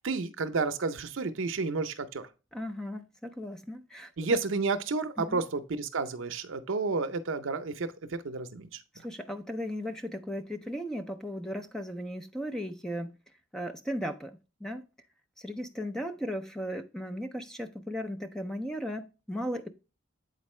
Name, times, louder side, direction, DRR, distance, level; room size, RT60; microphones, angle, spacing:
voice 1, 0.0-2.3 4.2-9.1, right 4 dB, 70° right, 0.6 m, -31 dB
voice 2, 2.5-4.1 5.2-5.4 8.9-13.1 13.5-14.9 15.4-19.7, equal, 5° left, 0.4 m, -36 dB
8.0 x 4.4 x 3.1 m
head